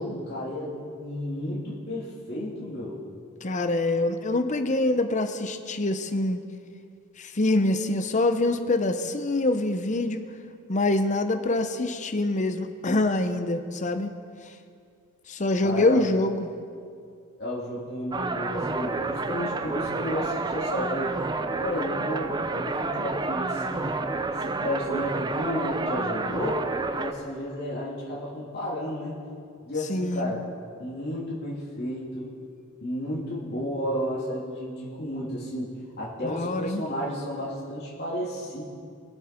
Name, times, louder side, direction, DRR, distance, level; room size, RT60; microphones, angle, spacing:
voice 1, 0.0-3.0 15.6-16.0 17.4-21.2 21.5-24.0 24.4-26.7 27.0-29.2 29.6-30.4 30.8-32.3 32.8-35.7 36.0-38.6, left 1 dB, 55° left, -7 dB, 2.6 m, -32 dB
voice 2, 3.4-6.4 7.2-10.2 10.7-14.1 14.4-14.5 15.3-16.5 29.9-30.3 36.2-36.8, left 2 dB, 35° left, 8 dB, 0.7 m, -25 dB
sound 1, 18.1-27.1, right 3 dB, 20° right, 0.5 m, -29 dB
22.5 x 8.0 x 4.4 m, 2.3 s
head